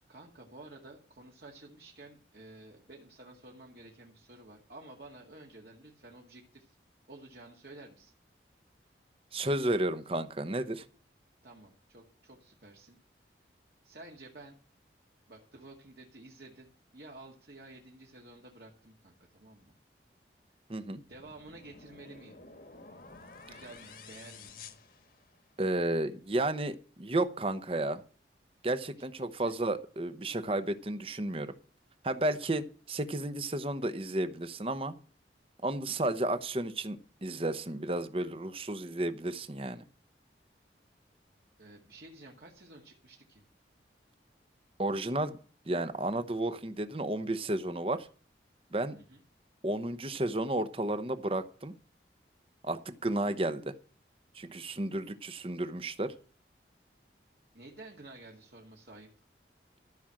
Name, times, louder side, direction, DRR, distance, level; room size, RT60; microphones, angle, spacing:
voice 1, 0.1-6.8 7.1-8.1 11.4-13.0 13.8-14.6 15.3-19.7 21.1-22.4 23.5-24.5 29.2-29.6 41.6-43.4 48.9-49.2 57.5-59.1, right 2 dB, 60° right, -1 dB, 2.0 m, -52 dB
voice 2, 9.3-10.8 20.7-21.0 25.6-28.0 28.6-31.5 32.0-34.9 35.6-39.8 44.8-45.4 45.7-48.1 48.7-49.0 49.6-51.7 52.6-53.7 54.3-56.1, right 1 dB, 30° right, 12 dB, 0.9 m, -32 dB
sound 1, 21.1-25.7, left 4 dB, 55° left, 1.5 m, -52 dB
14.0 x 6.2 x 7.6 m, 0.40 s
head